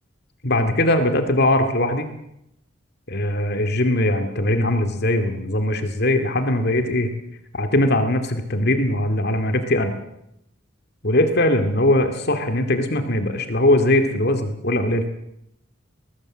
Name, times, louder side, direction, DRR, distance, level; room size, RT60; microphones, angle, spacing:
voice 1, 0.4-2.1 3.1-7.1 7.5-9.9 11.0-15.1, left 1 dB, 55° left, 7 dB, 2.2 m, -20 dB
22.5 x 19.5 x 7.4 m, 0.80 s
head